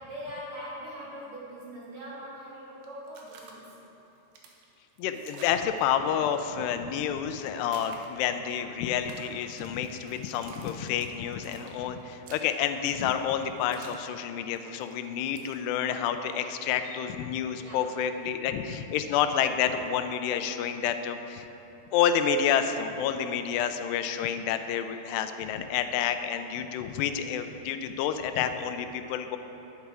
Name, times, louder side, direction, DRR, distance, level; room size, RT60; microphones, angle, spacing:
voice 1, 0.0-3.6 5.0-6.0 8.6-8.7 17.6-17.8 20.2-20.3, equal, 50° right, -9 dB, 4.3 m, -42 dB
sound 1, 2.8-3.5 4.0-5.9 7.5-8.3 9.0-14.0 14.4-15.6, right 4 dB, 70° right, 2.7 m, -51 dB
voice 2, 5.0-21.4 21.9-29.4, left 8 dB, 80° left, 8 dB, 2.6 m, -29 dB
11.0 x 10.5 x 4.8 m, 3.0 s
omnidirectional pair, 5.0 m